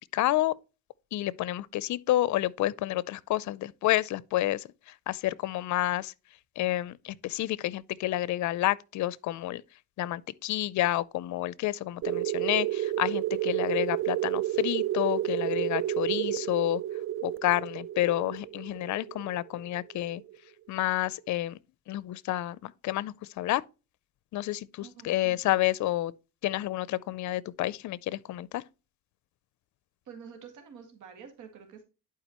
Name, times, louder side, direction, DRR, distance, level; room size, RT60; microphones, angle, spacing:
voice 1, 0.1-0.5 1.1-6.1 6.6-9.6 10.0-16.8 17.2-20.2 20.7-21.6 21.9-23.6 24.3-26.1 26.4-28.6, left 15 dB, 70° left, 0.5 m, -29 dB
sound 1, 12.0-20.3, right 14 dB, 45° right, 0.4 m, -31 dB
voice 2, 24.8-25.5 30.1-31.8, right 7 dB, 85° right, 2.1 m, -48 dB
11.5 x 4.8 x 3.0 m
cardioid pair, 90°, 30 cm